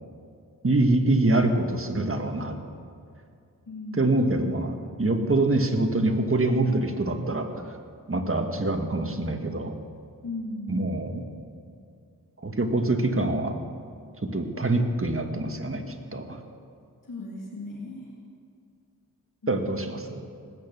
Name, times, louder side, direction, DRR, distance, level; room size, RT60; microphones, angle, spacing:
voice 1, 0.6-2.6 3.9-7.8 8.1-9.7 10.7-11.2 12.4-13.5 14.3-16.4 19.5-20.2, right 2 dB, 40° right, 5 dB, 1.7 m, -25 dB
voice 2, 3.7-4.2 10.2-10.8 17.1-18.1 19.4-20.0, left 2 dB, 65° left, -2 dB, 2.3 m, -37 dB
19.0 x 9.2 x 6.9 m, 2.3 s
cardioid pair, 50°, 34 cm